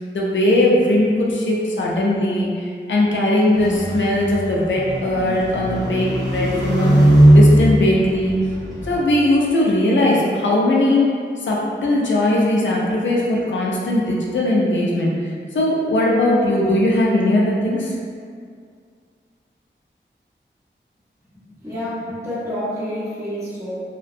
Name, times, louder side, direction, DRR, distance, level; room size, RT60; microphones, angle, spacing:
voice 1, 0.0-8.4 8.9-11.0 11.4-15.1 15.5-18.0, left 1 dB, 75° left, -4 dB, 0.4 m, -19 dB
sound 1, 3.5-9.0, right 1 dB, 20° left, 0.8 m, -18 dB
voice 2, 21.3-23.7, equal, 15° right, -13 dB, 1.2 m, -29 dB
2.5 x 2.1 x 2.5 m, 2.2 s
wide cardioid pair, 65°, 20 cm